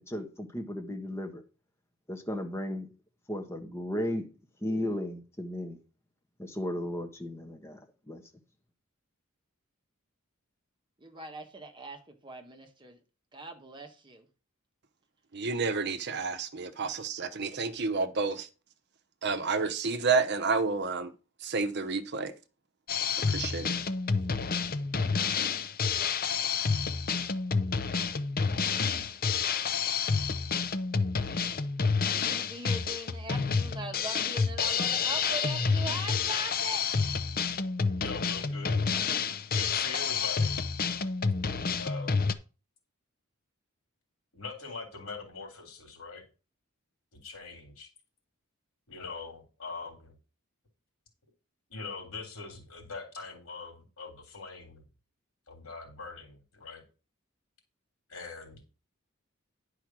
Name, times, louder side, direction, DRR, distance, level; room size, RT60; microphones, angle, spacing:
voice 1, 0.0-1.4 2.1-2.9 3.3-4.3 4.6-5.8 6.4-7.8 8.1-8.2, left 1 dB, 15° left, 1.3 m, -35 dB
voice 2, 11.0-13.0 13.3-14.2 16.8-16.9 32.1-36.8, right 2 dB, 20° right, 1.4 m, -41 dB
voice 3, 15.3-18.5 19.2-21.1 21.4-22.3 23.1-23.8, right 4 dB, 55° right, 0.9 m, -30 dB
Drum kit, 22.9-42.3, left 5 dB, 45° left, 0.7 m, -29 dB
voice 4, 37.9-38.8 39.5-40.5 41.7-42.2 44.3-46.2 47.1-47.9 48.9-50.1 51.7-54.8 55.5-56.8 58.1-58.6, left 4 dB, 85° left, 3.3 m, -42 dB
10.0 x 4.9 x 6.1 m
head